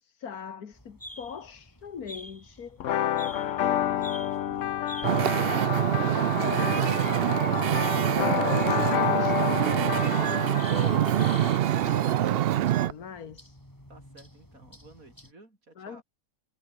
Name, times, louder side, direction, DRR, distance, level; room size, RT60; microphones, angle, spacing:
voice 1, 0.0-2.8 6.1-6.9 8.3-13.6 15.8-16.0, left 7 dB, 85° left, 2.1 m, -41 dB
sound 1, 0.7-15.3, equal, 10° left, 6.4 m, -49 dB
sound 2, 2.8-12.4, left 11 dB, 60° left, 1.0 m, -30 dB
voice 2, 3.1-5.5 13.9-16.0, right 2 dB, 65° right, 5.9 m, -54 dB
Wind / Ocean, 5.0-12.9, right 12 dB, 85° right, 0.5 m, -25 dB
omnidirectional pair, 1.6 m